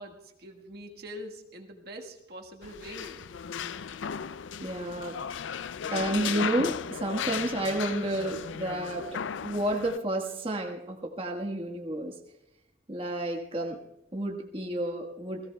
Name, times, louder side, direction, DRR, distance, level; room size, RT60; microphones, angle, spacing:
voice 1, 0.0-3.2, equal, 55° right, 1 dB, 1.5 m, -44 dB
sound 1, 2.6-10.0, left 7 dB, 80° left, 0.4 m, -36 dB
voice 2, 4.6-5.1 5.9-9.0 9.4-12.1 12.9-13.8 14.1-15.4, right 1 dB, 30° right, 2 dB, 1.4 m, -31 dB
29.0 x 17.5 x 2.3 m, 0.90 s
head